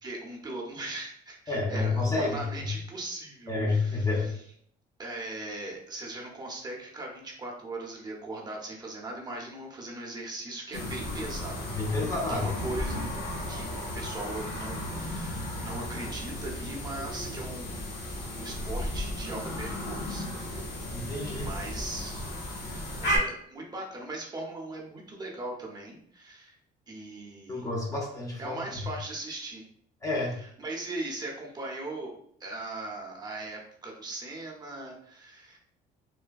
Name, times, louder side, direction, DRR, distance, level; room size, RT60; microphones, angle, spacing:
voice 1, 0.0-4.3 5.0-11.9 12.3-13.0 13.5-17.7 18.3-20.3 21.4-22.3 22.6-26.6 26.9-27.5 28.4-29.6 30.6-32.1 32.4-35.6, right 2 dB, 25° right, -2 dB, 0.7 m, -39 dB
voice 2, 1.5-2.7 3.5-4.3 11.7-12.6 20.9-21.5 27.5-28.8 30.0-30.4, left 3 dB, 20° left, -1 dB, 0.6 m, -29 dB
sound 1, 10.7-23.2, equal, 90° left, 0.9 m, -34 dB
3.3 x 2.1 x 2.3 m, 0.64 s
cardioid pair, 110°, 17 cm